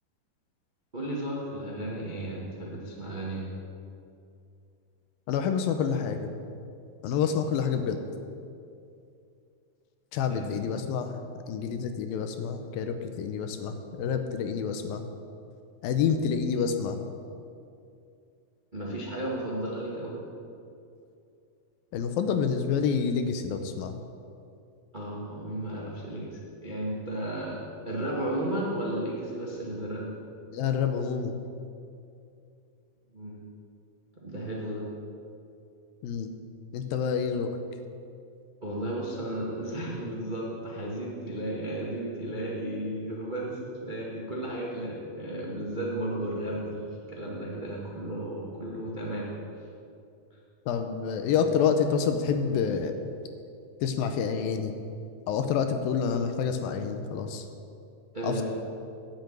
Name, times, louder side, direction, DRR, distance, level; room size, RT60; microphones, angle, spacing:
voice 1, 0.9-3.5 10.3-10.6 18.7-20.3 24.9-30.1 33.1-33.5 34.2-34.8 38.6-49.3 58.1-58.4, right 1 dB, 45° right, -4 dB, 0.6 m, -34 dB
voice 2, 5.3-6.3 7.0-8.0 10.1-11.2 11.5-15.0 15.8-17.0 21.9-23.9 30.5-31.4 36.0-36.3 36.7-37.5 50.7-53.0 53.8-54.7 55.3-57.5 58.2-58.4, left 6 dB, 75° left, 7 dB, 2.4 m, -28 dB
10.5 x 8.2 x 9.0 m, 2.5 s
omnidirectional pair, 4.5 m